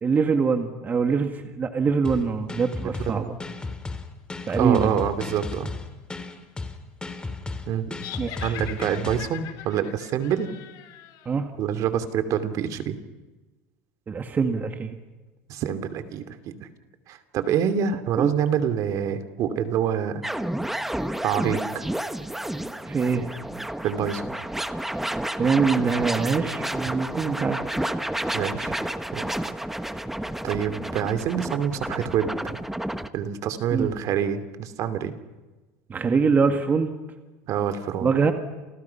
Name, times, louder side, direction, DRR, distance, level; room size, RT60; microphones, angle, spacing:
voice 1, 0.0-3.3 4.5-4.9 8.2-8.5 11.3-11.5 14.1-15.0 18.2-18.3 22.9-23.2 25.4-27.6 33.7-33.9 35.9-36.9 38.0-38.3, right 5 dB, 25° right, 6 dB, 1.9 m, -23 dB
sound 1, 2.0-9.3, left 3 dB, 15° left, 2.8 m, -34 dB
voice 2, 3.1-3.4 4.5-5.7 7.7-7.9 8.4-10.5 11.6-13.0 15.5-16.5 17.1-20.2 21.2-21.8 23.8-24.2 26.9-27.0 28.3-28.7 29.1-29.2 30.4-32.5 33.1-35.2 37.5-38.2, right 8 dB, 50° right, 11 dB, 2.6 m, -26 dB
sound 2, 7.9-11.3, left 12 dB, 60° left, 3.7 m, -41 dB
sound 3, 20.2-33.1, right 1 dB, 5° right, 1.2 m, -30 dB
30.0 x 29.0 x 5.8 m, 1.2 s
supercardioid pair, 125°, 7 cm